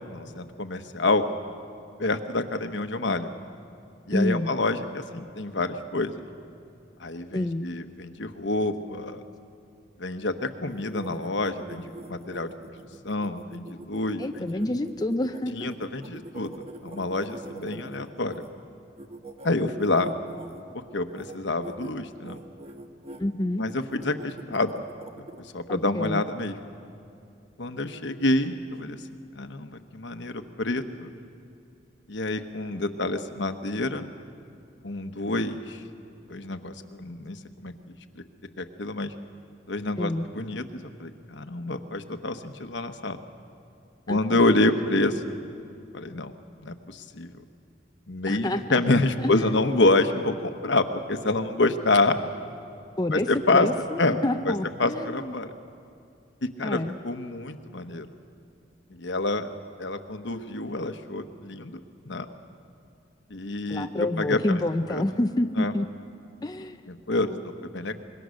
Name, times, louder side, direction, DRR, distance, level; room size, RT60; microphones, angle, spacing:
voice 1, 0.1-1.3 2.0-3.3 4.1-6.2 7.0-9.2 10.0-11.8 12.1-12.5 13.0-14.6 15.5-16.5 16.8-18.3 19.4-20.1 20.7-22.4 23.6-24.8 25.5-26.6 27.6-29.0 29.3-31.1 32.1-34.1 34.8-35.8 36.3-37.7 38.6-39.1 39.7-43.2 44.1-45.4 45.9-46.3 46.6-47.3 48.1-52.2 53.1-53.7 54.0-54.5 54.8-55.5 56.4-56.8 57.0-58.0 58.9-59.5 59.8-61.8 62.0-62.3 63.3-64.6 64.9-65.0 65.6-65.7 66.9-67.4 67.6-67.9, left 2 dB, 75° left, 8 dB, 1.2 m, -27 dB
voice 2, 4.1-4.5 7.3-7.7 14.2-15.7 23.2-23.6 25.7-26.2 40.0-40.3 44.1-44.4 48.3-48.8 49.2-49.6 53.0-55.3 56.6-57.0 63.7-65.9 66.4-66.8 67.1-67.4, left 1 dB, 20° left, 7 dB, 0.5 m, -28 dB
sound 1, 10.7-18.5 19.0-20.6 21.1-21.4 21.6-21.9 22.2-23.2 23.7-25.4, right 1 dB, 35° right, 1.4 m, -43 dB
26.0 x 21.5 x 6.5 m, 2.5 s
head